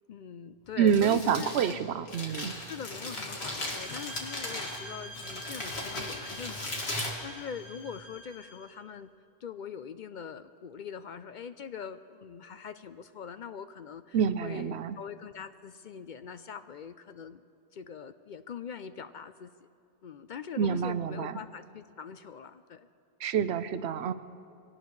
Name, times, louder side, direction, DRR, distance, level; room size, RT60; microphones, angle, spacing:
voice 1, 0.1-1.8 2.6-9.1 9.4-14.2 14.4-17.4 17.7-19.7 20.0-22.9, left 7 dB, 60° left, 11 dB, 0.6 m, -43 dB
Crumpling crinkling, 0.7-8.0, left 1 dB, 80° left, 2.3 m, -38 dB
voice 2, 0.8-2.6 14.1-15.0 20.6-21.4 23.2-24.1, right 8 dB, 85° right, 13 dB, 0.9 m, -27 dB
sound 1, 3.5-8.7, equal, 5° right, 1.9 m, -47 dB
23.0 x 17.5 x 3.2 m, 2.4 s
omnidirectional pair, 1.1 m